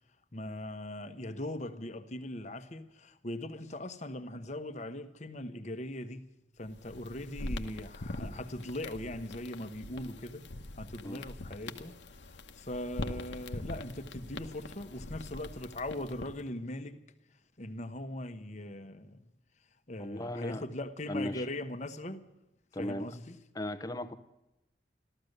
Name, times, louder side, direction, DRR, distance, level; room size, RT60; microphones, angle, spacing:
voice 1, 0.3-6.3 6.6-10.5 10.7-17.0 17.6-19.3 19.9-22.2 22.8-23.4, left 1 dB, 40° left, 1.1 m, -40 dB
sound 1, 6.7-16.5, left 2 dB, 85° left, 1.1 m, -43 dB
voice 2, 20.0-20.6 21.1-21.5 22.7-23.1 23.5-24.1, left 1 dB, 20° left, 0.9 m, -37 dB
15.0 x 13.5 x 6.6 m
head